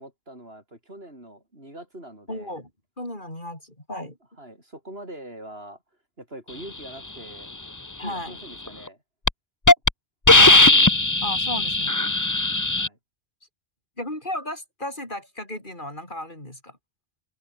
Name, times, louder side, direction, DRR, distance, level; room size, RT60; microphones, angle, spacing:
voice 1, 0.0-2.6 4.4-5.8 6.2-7.7 8.0-9.0 12.8-13.0, right 1 dB, 70° right, 8.3 m, -43 dB
voice 2, 2.3-2.7 3.0-4.2 8.0-8.4 10.3-10.7 11.2-12.0 14.0-16.8, left 1 dB, 50° left, 7.9 m, -34 dB
Hiss, 8.7-8.9 9.3-9.4 9.7-9.9 10.3-12.9, left 2 dB, 20° left, 1.1 m, -17 dB
omnidirectional pair, 1.1 m